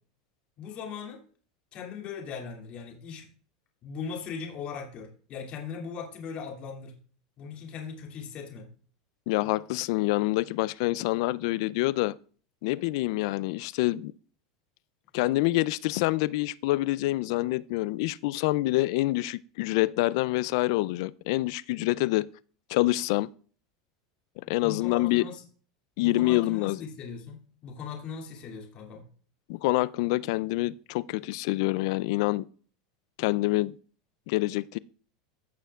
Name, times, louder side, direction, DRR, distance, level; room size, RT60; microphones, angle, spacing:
voice 1, 0.6-1.2 1.7-3.3 3.8-6.9 7.4-8.7 24.5-25.4 26.0-29.0, left 6 dB, 45° left, 2.5 m, -39 dB
voice 2, 9.3-12.2 12.6-14.1 15.1-22.3 22.7-23.3 24.5-25.2 26.0-26.8 29.5-32.5 33.2-33.7 34.3-34.8, left 19 dB, 65° left, 0.4 m, -26 dB
15.5 x 6.6 x 2.4 m
supercardioid pair, 115°, 3 cm